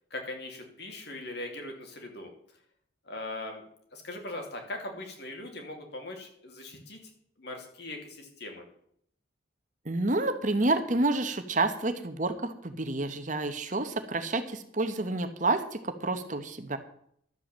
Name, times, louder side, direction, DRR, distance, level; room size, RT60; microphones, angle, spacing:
voice 1, 0.1-2.3 3.1-3.6 3.9-7.0 7.4-8.6, left 2 dB, 55° left, 3 dB, 2.8 m, -40 dB
voice 2, 9.8-16.8, right 2 dB, 40° right, 8 dB, 1.0 m, -29 dB
12.0 x 7.7 x 7.4 m, 0.67 s
head